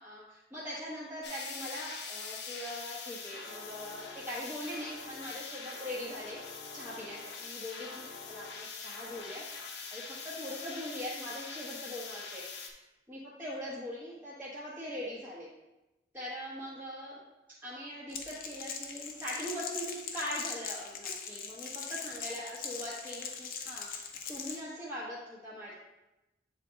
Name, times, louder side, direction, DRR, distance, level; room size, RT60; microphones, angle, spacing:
voice 1, 0.0-6.4 6.7-9.4 9.9-12.4 13.1-15.5 16.1-17.2 17.6-25.7, equal, 10° right, -9 dB, 1.1 m, -41 dB
sound 1, 1.2-12.7, left 5 dB, 80° left, 0.8 m, -43 dB
Crackle, 18.1-24.6, left 6 dB, 50° left, 0.7 m, -41 dB
8.3 x 3.7 x 3.9 m, 1.0 s
head